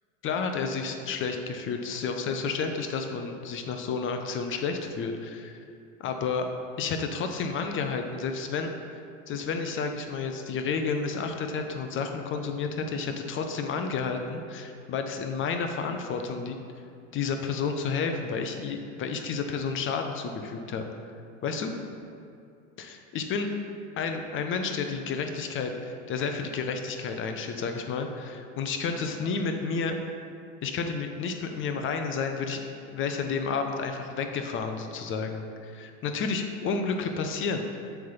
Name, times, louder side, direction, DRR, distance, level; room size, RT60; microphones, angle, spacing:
voice 1, 0.2-5.5 6.0-6.5 6.8-8.7 9.3-16.6 17.1-20.8 21.4-21.7 22.8-23.5 24.0-30.0 30.6-37.6, left 5 dB, 30° left, 5 dB, 0.7 m, -31 dB
7.6 x 3.5 x 5.7 m, 2.5 s
hypercardioid pair, 85°, 40 cm